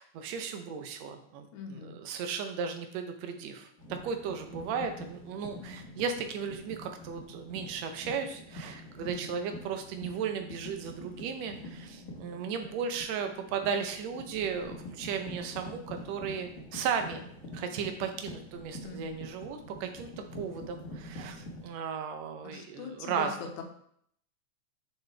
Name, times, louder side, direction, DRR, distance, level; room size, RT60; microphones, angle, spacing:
voice 1, 0.0-17.2 17.5-20.1 20.4-23.6, right 6 dB, 70° right, 6 dB, 1.8 m, -35 dB
voice 2, 1.5-1.9 5.6-5.9 9.0-9.3 18.8-19.2 22.4-23.3 23.6-23.7, left 5 dB, 75° left, 2 dB, 2.4 m, -42 dB
sound 1, 3.8-21.7, left 1 dB, 35° left, 1.3 m, -46 dB
7.0 x 6.7 x 3.4 m, 0.67 s
omnidirectional pair, 3.6 m